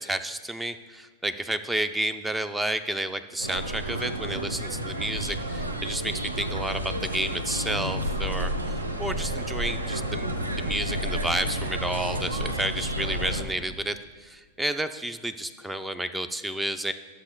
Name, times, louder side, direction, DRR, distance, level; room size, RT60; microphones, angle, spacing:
voice 1, 0.0-16.9, right 1 dB, 5° right, 11 dB, 0.3 m, -31 dB
sound 1, 3.4-13.4, equal, 80° right, 0.5 m, -30 dB
13.0 x 6.9 x 2.2 m, 1.5 s
figure-of-eight pair, 90°, 0 cm